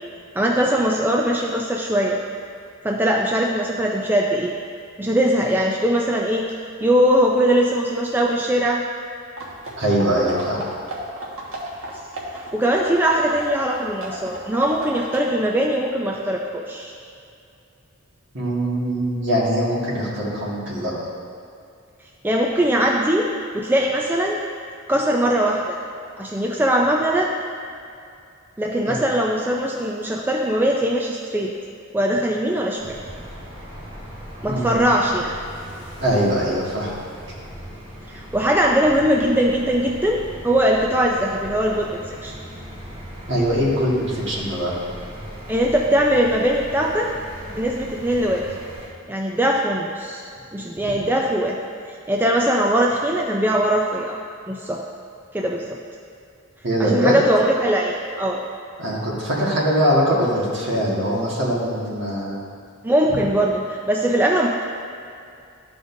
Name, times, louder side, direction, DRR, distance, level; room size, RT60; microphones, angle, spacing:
voice 1, 0.4-2.2 2.8-4.5 5.0-6.4 6.8-8.8 12.4-16.9 22.2-23.3 23.5-24.4 24.9-25.8 26.2-27.3 28.6-31.5 31.9-33.0 34.4-35.3 38.1-41.9 42.2-42.3 45.5-47.1 47.5-48.5 49.1-50.2 50.5-51.6 52.1-54.2 54.5-54.8 55.3-55.6 56.8-58.4 62.8-64.5, right 1 dB, 10° right, -1 dB, 0.4 m, -21 dB
sound 1, 9.4-15.2, right 1 dB, 85° right, 1.4 m, -34 dB
voice 2, 9.8-10.6 18.3-20.9 28.9-29.0 34.5-34.9 36.0-36.9 43.3-44.7 56.6-57.1 58.8-62.4, equal, 60° right, -5 dB, 1.8 m, -22 dB
sound 2, 32.8-48.9, equal, 30° right, 1.5 m, -38 dB
13.0 x 5.1 x 2.7 m, 2.5 s
head